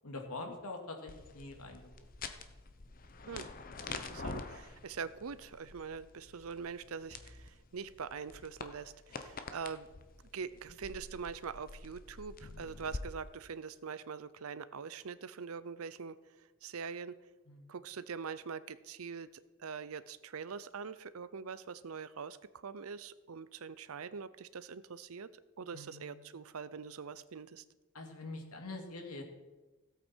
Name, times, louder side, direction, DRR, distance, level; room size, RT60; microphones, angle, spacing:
voice 1, 0.0-1.9 17.5-17.7 25.7-26.3 27.9-29.2, left 2 dB, 85° left, 3 dB, 2.3 m, -44 dB
sound 1, 1.1-13.0, left 3 dB, 40° left, 0.8 m, -47 dB
voice 2, 3.9-9.9 10.3-17.1 17.7-19.3 19.6-22.4 22.6-25.3 25.6-27.6, right 5 dB, 75° right, 16 dB, 0.6 m, -43 dB
16.5 x 8.5 x 4.5 m, 1.2 s
head